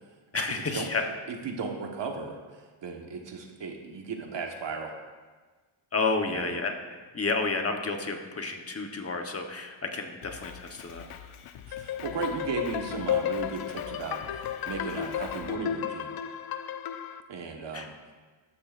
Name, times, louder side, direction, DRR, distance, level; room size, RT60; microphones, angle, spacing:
voice 1, 0.3-1.1 5.9-6.7 7.1-11.1 17.7-17.9, left 3 dB, 30° left, 4 dB, 1.1 m, -30 dB
voice 2, 1.4-2.4 2.8-4.9 6.3-6.6 11.7-14.2 14.7-16.1 17.3-17.9, right 4 dB, 60° right, 2 dB, 1.4 m, -35 dB
Drum kit, 10.2-15.5, left 8 dB, 85° left, 0.8 m, -46 dB
sound 1, 11.7-17.2, left 9 dB, 50° left, 0.5 m, -33 dB
13.0 x 12.0 x 2.5 m, 1.4 s
wide cardioid pair, 150°, 48 cm